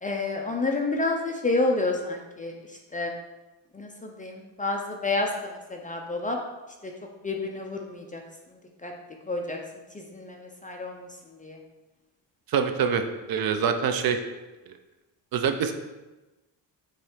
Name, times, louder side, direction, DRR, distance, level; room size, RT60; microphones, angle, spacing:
voice 1, 0.0-3.1 3.7-6.4 6.8-6.9 7.2-8.2 8.8-8.9 9.3-9.6 9.9-11.1 11.4-11.6, left 2 dB, 20° left, 1 dB, 0.4 m, -29 dB
voice 2, 12.5-14.2 15.3-15.7, right 7 dB, 55° right, 7 dB, 0.6 m, -25 dB
7.4 x 3.1 x 4.9 m, 1.1 s
cardioid pair, 165°, 45 cm